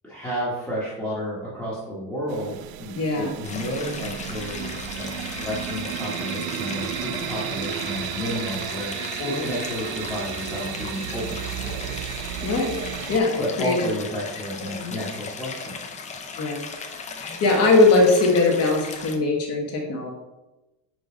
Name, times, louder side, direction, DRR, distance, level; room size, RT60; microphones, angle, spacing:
voice 1, 0.0-9.0 9.2-12.0 13.4-15.8, equal, 5° left, -9 dB, 1.2 m, -32 dB
sound 1, 2.3-13.2, right 11 dB, 85° right, 0.5 m, -33 dB
voice 2, 3.0-3.3 9.2-9.5 12.4-12.8 13.1-13.8 14.7-15.0 16.4-16.7 17.2-20.1, left 3 dB, 40° left, 0 dB, 1.1 m, -21 dB
Stream, 3.4-19.2, left 5 dB, 20° left, 0.5 m, -37 dB
5.2 x 3.8 x 5.0 m, 1.0 s
cardioid pair, 170°, 36 cm